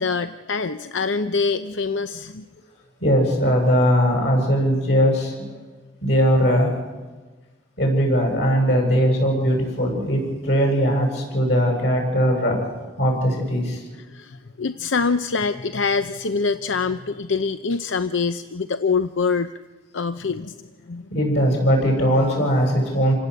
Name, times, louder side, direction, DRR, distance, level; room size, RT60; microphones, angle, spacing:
voice 1, 0.0-2.5 14.0-19.5 19.9-21.1, left 4 dB, 80° left, 11 dB, 0.7 m, -25 dB
voice 2, 3.0-5.3 6.0-6.7 7.8-12.6 13.0-13.8 21.1-23.1, equal, 65° left, 1 dB, 7.5 m, -19 dB
28.0 x 18.5 x 8.1 m, 1.3 s
head